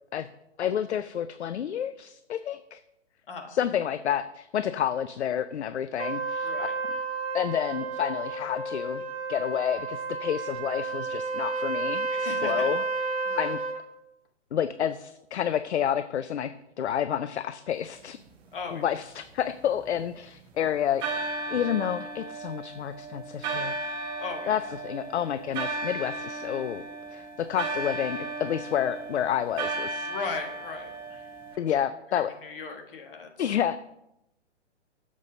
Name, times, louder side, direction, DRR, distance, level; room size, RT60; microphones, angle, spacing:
voice 1, 0.6-2.8 3.5-6.5 7.3-9.0 9.3-12.8 13.4-13.6 14.5-18.2 18.7-23.8 24.5-26.8 27.1-30.1 31.6-32.3 33.4-33.8, left 9 dB, 70° left, 13 dB, 0.5 m, -29 dB
voice 2, 3.3-3.6 6.4-6.7 12.1-12.7 13.2-13.5 18.5-18.9 24.2-24.6 30.1-31.3 31.7-31.8 32.1-33.6, left 5 dB, 50° left, 4 dB, 1.5 m, -38 dB
Trumpet, 6.0-13.8, right 4 dB, 60° right, 1.4 m, -31 dB
sound 1, 19.0-20.4 21.0-31.6, right 3 dB, 15° right, 0.6 m, -35 dB
7.3 x 5.5 x 4.9 m, 0.85 s
figure-of-eight pair, 120°, 35 cm